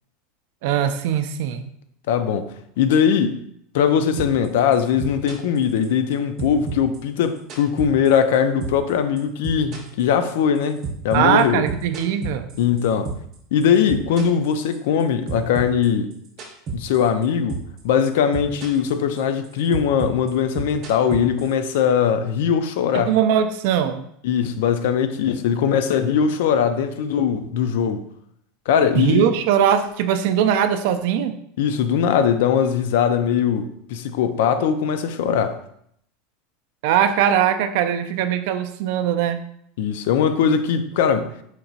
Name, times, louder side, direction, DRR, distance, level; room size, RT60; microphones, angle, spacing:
voice 1, 0.6-1.7 11.1-12.5 22.9-24.0 28.9-31.3 36.8-39.4, right 9 dB, 55° right, 0.3 m, -20 dB
voice 2, 2.1-3.4 3.7-11.6 12.6-13.1 13.5-16.1 16.7-17.6 17.8-23.1 24.2-28.0 28.7-29.2 31.6-35.6 39.8-41.3, left 7 dB, 70° left, 0.3 m, -20 dB
sound 1, 4.2-4.5 4.7-6.1 6.4-8.4 8.6-8.9 9.2-13.4 13.6-15.0 15.3-17.2 17.5-17.8 18.0-18.9 19.2-21.8, right 5 dB, 35° right, 0.8 m, -31 dB
4.4 x 2.9 x 2.7 m
supercardioid pair, 175°, 0 cm